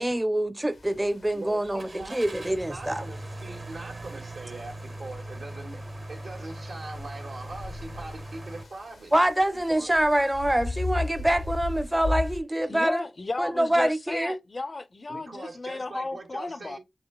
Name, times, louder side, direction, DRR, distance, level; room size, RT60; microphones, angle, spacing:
voice 1, 0.0-3.0 9.1-13.0 13.4-14.4, right 1 dB, 15° right, 0.5 m, -25 dB
sound 1, 0.7-12.4, left 2 dB, 85° left, 0.7 m, -38 dB
voice 2, 1.3-4.7 5.0-9.1 9.7-9.9 15.1-16.8, right 2 dB, 90° right, 1.3 m, -41 dB
Car / Engine starting, 1.8-8.6, right 1 dB, 55° right, 0.8 m, -40 dB
voice 3, 12.7-16.8, left 3 dB, 50° left, 0.5 m, -34 dB
7.1 x 2.7 x 2.3 m
cardioid pair, 40°, 0 cm